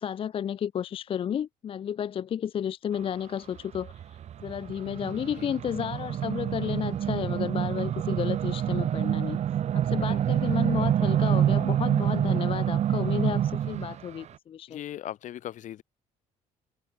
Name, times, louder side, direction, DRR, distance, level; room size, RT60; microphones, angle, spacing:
voice 1, 0.0-9.4 9.7-14.8, left 9 dB, 40° left, 0.6 m, -32 dB
sound 1, 3.6-14.0, right 10 dB, 50° right, 1.3 m, -27 dB
voice 2, 14.7-15.8, left 12 dB, 60° left, 2.7 m, -38 dB
cardioid pair, 115°, 14 cm